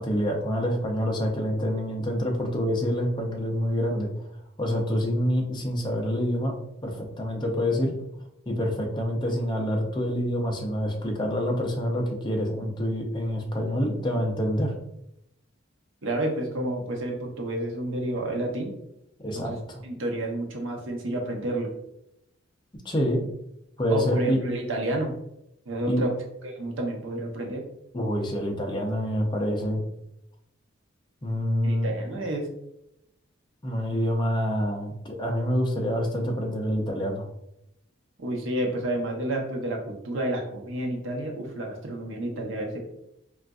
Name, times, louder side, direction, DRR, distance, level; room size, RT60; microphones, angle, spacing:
voice 1, 0.0-4.1 4.6-6.5 6.8-7.9 8.5-14.7 19.2-19.8 22.8-23.2 23.8-24.4 25.9-26.0 27.9-29.8 31.2-31.9 33.6-37.2, equal, 25° left, 0 dB, 0.5 m, -27 dB
voice 2, 16.0-18.7 19.3-19.6 19.8-21.7 23.9-25.1 25.7-26.1 26.4-27.6 31.6-32.5 38.2-42.8, right 1 dB, 70° right, 1 dB, 0.7 m, -30 dB
3.8 x 2.4 x 2.3 m, 0.81 s
head